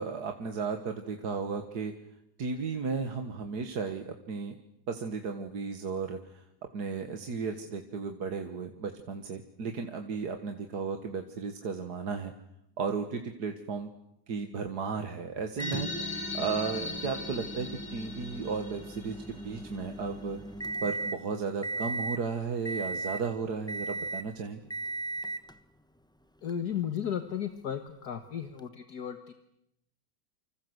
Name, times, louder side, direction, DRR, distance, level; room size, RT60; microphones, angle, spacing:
voice 1, 0.0-1.9 2.4-4.5 4.9-6.4 6.7-12.3 12.8-13.9 14.3-15.9 16.3-20.4 20.8-24.6, right 5 dB, 65° right, 6 dB, 2.1 m, -34 dB
sound 1, 15.6-20.5, left 2 dB, 85° left, 4.8 m, -40 dB
Microwave oven, 15.6-21.2 21.6-22.2 22.6-23.3 23.7-24.3 24.7-25.5 26.5-26.6 28.6-28.7, right 2 dB, 5° left, 0.9 m, -37 dB
voice 2, 26.4-29.3, left 9 dB, 65° left, 8 dB, 2.0 m, -34 dB
28.5 x 26.0 x 8.0 m, 0.80 s
omnidirectional pair, 1.8 m